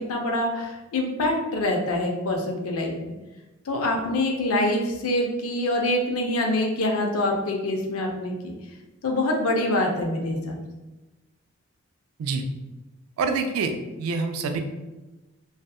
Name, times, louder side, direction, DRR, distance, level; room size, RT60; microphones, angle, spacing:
voice 1, 0.0-3.1 3.7-8.3 9.0-10.6, left 1 dB, 85° left, 1 dB, 0.5 m, -25 dB
voice 2, 13.2-13.7 14.0-14.6, right 4 dB, 85° right, 6 dB, 0.3 m, -26 dB
2.7 x 2.3 x 2.3 m, 1.1 s
head